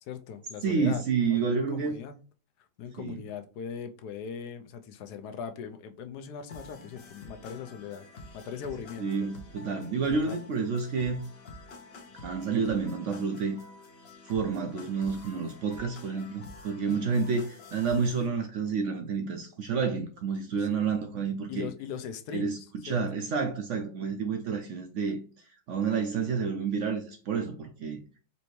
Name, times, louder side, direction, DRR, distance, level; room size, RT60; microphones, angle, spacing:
voice 1, 0.0-1.0 1.3-2.2 2.8-8.0 8.3-9.3 10.2-10.4 16.9-17.3 20.6-20.9 21.5-23.0, left 7 dB, 80° left, 1.1 m, -40 dB
voice 2, 0.6-1.9 3.0-3.2 9.0-11.2 12.2-13.6 14.2-21.7 22.3-22.6 22.8-25.2 25.7-28.0, right 5 dB, 65° right, 0.7 m, -29 dB
sound 1, 6.5-18.3, left 2 dB, 50° left, 0.8 m, -49 dB
4.2 x 2.7 x 3.0 m
omnidirectional pair, 1.7 m